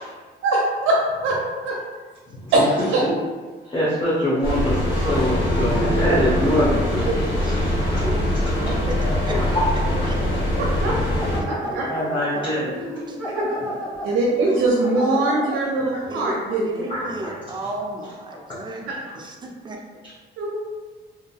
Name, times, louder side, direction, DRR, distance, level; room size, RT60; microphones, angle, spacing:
voice 1, 0.4-0.9 1.2-1.3 1.6-1.7 2.5-3.0 6.1-6.2 7.0-7.2 10.6-10.9 11.5-11.8 13.3-13.5 14.0-16.9 18.9-19.0 20.4-20.6, right 2 dB, 85° right, -2 dB, 0.5 m, -22 dB
voice 2, 3.6-8.1 8.4-8.8 9.3-9.7 10.0-10.2 11.9-13.0 14.1-14.2 16.9-17.3 20.0-20.1, equal, 25° left, -8 dB, 0.8 m, -24 dB
sound 1, 4.4-11.4, left 1 dB, 85° left, 1.4 m, -22 dB
voice 3, 4.7-5.2 6.2-6.6 6.9-10.1 11.6-11.8 12.3-12.8 13.1-13.2 16.1-19.9, right 1 dB, 25° right, 1 dB, 0.4 m, -36 dB
sound 2, 6.1-6.4 9.4-9.5 10.1-15.7 16.3-16.4 16.8-16.9, equal, 5° left, 1.1 m, -32 dB
2.6 x 2.6 x 2.3 m, 1.4 s
cardioid pair, 90°, 20 cm